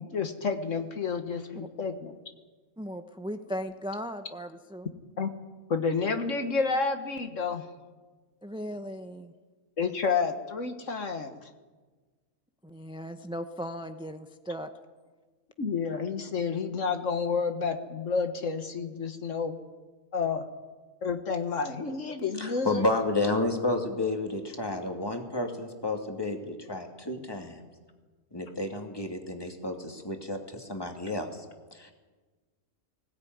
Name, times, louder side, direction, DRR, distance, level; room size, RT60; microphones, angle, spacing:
voice 1, 0.0-2.2 5.2-5.3 5.7-7.6 9.8-11.5 15.6-19.6 20.1-20.4 21.0-22.8, left 5 dB, 65° left, 7 dB, 1.6 m, -30 dB
voice 2, 2.8-4.9 8.4-9.3 12.6-14.7, equal, 5° right, 7 dB, 0.7 m, -37 dB
voice 3, 22.4-27.6 28.3-31.5 31.7-31.9, left 2 dB, 15° left, 3 dB, 2.4 m, -31 dB
20.0 x 17.0 x 9.4 m, 1.4 s
omnidirectional pair, 1.4 m